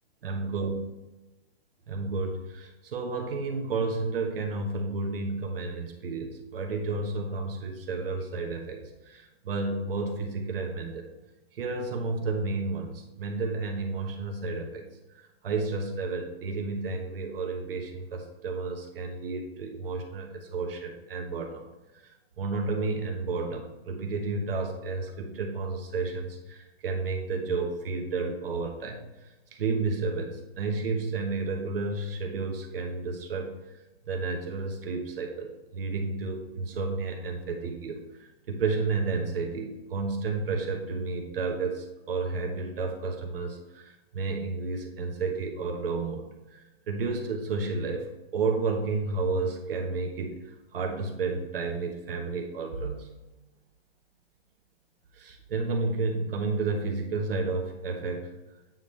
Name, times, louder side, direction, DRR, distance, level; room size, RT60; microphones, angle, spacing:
voice 1, 0.2-0.8 1.9-11.1 11.5-14.9 15.4-21.6 21.9-33.5 34.1-53.1 55.1-58.3, right 3 dB, 65° right, 1 dB, 1.2 m, -31 dB
9.0 x 3.8 x 3.3 m, 1.1 s
hypercardioid pair, 165°, 31 cm